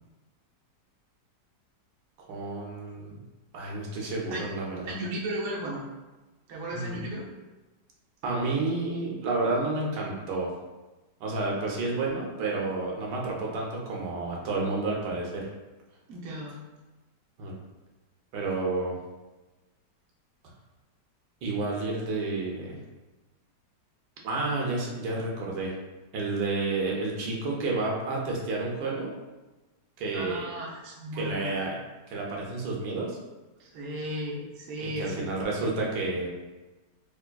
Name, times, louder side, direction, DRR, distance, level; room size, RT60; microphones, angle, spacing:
voice 1, 2.3-3.2 3.5-5.0 6.7-7.1 8.2-10.5 11.2-15.5 17.4-17.5 18.3-19.0 21.4-22.8 24.2-25.7 26.1-29.1 30.0-30.5 31.1-31.8 32.1-33.2 34.8-36.3, right 3 dB, 80° right, -2 dB, 1.3 m, -30 dB
voice 2, 4.8-5.8 6.5-7.2 16.1-16.6 30.1-31.6 33.6-35.5, equal, 60° right, -4 dB, 0.9 m, -35 dB
3.4 x 3.2 x 2.2 m, 1.1 s
omnidirectional pair, 1.9 m